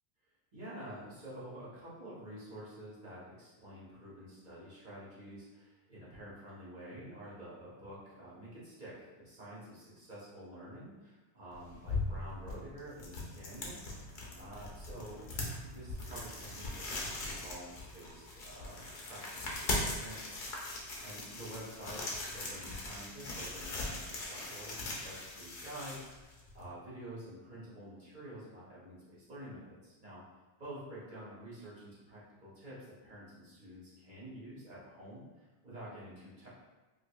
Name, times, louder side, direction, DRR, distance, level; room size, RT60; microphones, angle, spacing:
voice 1, 0.5-14.0 14.4-15.2 15.5-30.2 30.6-36.5, right 1 dB, 45° right, -9 dB, 1.2 m, -49 dB
sound 1, 11.5-26.7, left 2 dB, 55° left, 0.8 m, -40 dB
sound 2, 12.9-16.9, right 2 dB, 90° right, 1.1 m, -55 dB
4.7 x 2.5 x 2.3 m, 1.2 s
omnidirectional pair, 1.1 m